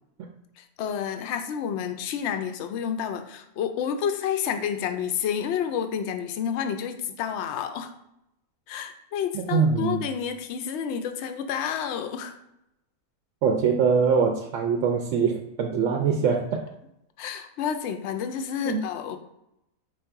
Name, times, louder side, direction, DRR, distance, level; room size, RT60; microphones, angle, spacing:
voice 1, 0.6-7.9 8.7-12.3 17.2-19.2, left 8 dB, 65° left, 7 dB, 0.7 m, -30 dB
voice 2, 9.3-10.0 13.4-16.6 18.6-18.8, right 6 dB, 70° right, 3 dB, 0.8 m, -23 dB
4.7 x 2.5 x 4.5 m, 0.84 s
omnidirectional pair, 1.5 m